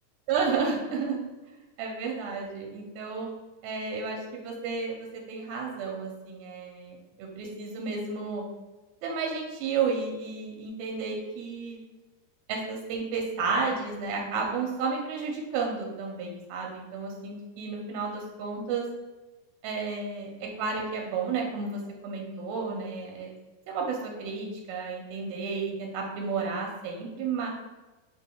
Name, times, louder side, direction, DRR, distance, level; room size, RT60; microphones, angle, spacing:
voice 1, 0.3-1.2 1.8-3.3 3.6-8.4 9.0-11.8 12.5-18.9 19.6-23.3 23.7-27.5, right 4 dB, 90° right, 0 dB, 2.5 m, -32 dB
6.0 x 2.2 x 3.5 m, 1.2 s
omnidirectional pair, 4.3 m